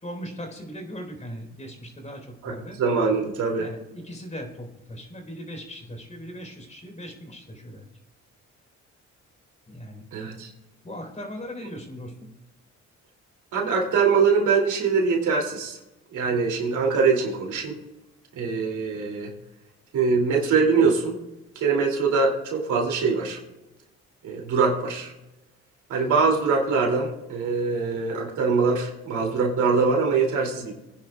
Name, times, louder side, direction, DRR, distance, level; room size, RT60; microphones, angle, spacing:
voice 1, 0.0-2.8 3.6-7.9 9.7-10.0 10.8-12.1, equal, 25° left, 3 dB, 4.1 m, -39 dB
voice 2, 2.4-3.7 10.1-10.5 13.5-15.8 16.1-17.8 18.3-19.3 19.9-21.2 21.5-23.4 24.2-25.1 25.9-30.7, right 4 dB, 80° right, 1 dB, 2.8 m, -23 dB
23.5 x 10.5 x 2.4 m, 0.97 s
cardioid pair, 90°, 30 cm